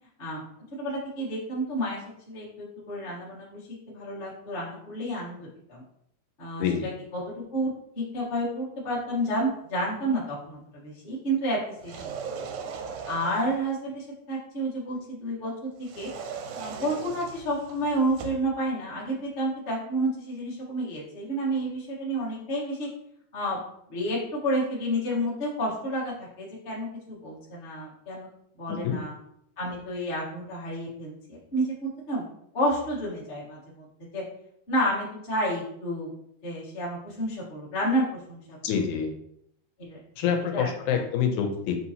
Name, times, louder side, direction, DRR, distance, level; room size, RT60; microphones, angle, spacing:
voice 1, 0.8-2.0 2.3-3.6 3.9-5.4 5.7-5.8 6.4-6.7 7.1-7.2 7.5-12.1 13.0-15.5 15.8-16.1 16.5-22.9 23.3-23.6 23.9-28.3 28.6-29.1 29.6-32.2 32.5-33.9 34.1-34.2 34.7-36.1 36.4-38.6 39.8-40.0 40.5-41.0, right 1 dB, 40° left, -6 dB, 0.7 m, -30 dB
voice 2, 6.6-6.9 28.8-29.0 38.6-39.1 40.2-41.8, left 7 dB, 85° left, 4 dB, 2.0 m, -26 dB
sound 1, 11.7-13.6 15.8-18.5, right 6 dB, 85° right, 2.0 m, -38 dB
6.1 x 2.7 x 2.8 m, 0.74 s
omnidirectional pair, 3.5 m